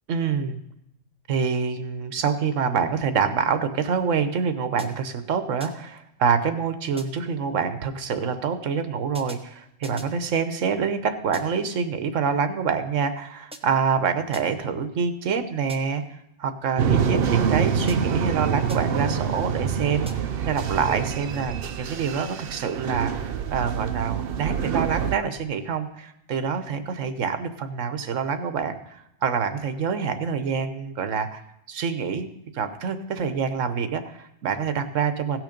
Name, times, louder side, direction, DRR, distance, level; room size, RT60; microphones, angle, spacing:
voice 1, 0.1-0.6 1.3-31.4 31.7-32.3 32.5-35.4, right 6 dB, 80° right, 9 dB, 1.2 m, -26 dB
sound 1, 4.8-5.2 5.6-6.0 7.0-7.4 9.1-10.2 11.3-11.8 13.5-13.9 14.3-14.8 15.7-16.1 17.9-18.3 18.7-19.1 20.1-20.5, right 1 dB, 5° right, 0.6 m, -45 dB
sound 2, 16.8-25.2, right 7 dB, 55° right, 0.8 m, -26 dB
16.5 x 6.2 x 5.1 m, 0.82 s
omnidirectional pair, 1.3 m